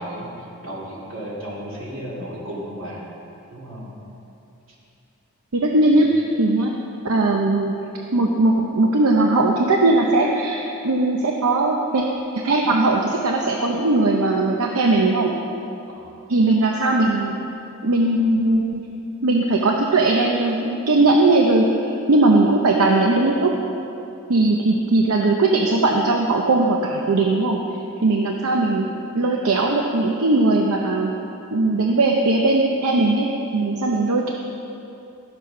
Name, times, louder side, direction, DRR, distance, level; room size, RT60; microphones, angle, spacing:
voice 1, 0.0-3.0 3.5-3.9 5.9-6.0 15.9-16.1, equal, 65° right, -4 dB, 2.5 m, -34 dB
voice 2, 5.5-6.7 7.0-7.7 8.1-12.0 12.3-15.3 16.3-17.3 17.8-18.8 19.2-21.6 22.1-23.5 24.3-27.6 28.0-28.9 29.1-31.1 31.5-34.3, right 2 dB, 80° right, 1 dB, 0.8 m, -19 dB
11.5 x 7.6 x 5.9 m, 2.8 s
head